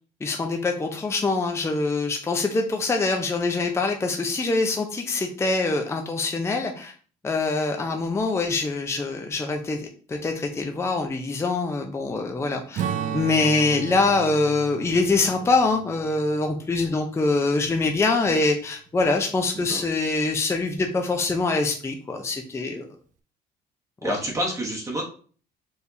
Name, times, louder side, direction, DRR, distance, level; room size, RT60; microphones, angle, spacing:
voice 1, 0.2-6.9 7.2-12.8 13.1-22.9 24.0-24.2, left 3 dB, 15° left, 3 dB, 0.5 m, -24 dB
Strum, 12.8-17.4, right 8 dB, 50° right, 0.4 m, -34 dB
voice 2, 24.0-25.0, equal, 20° right, -2 dB, 0.9 m, -28 dB
4.6 x 3.4 x 2.7 m, 0.41 s
cardioid pair, 110°, 17 cm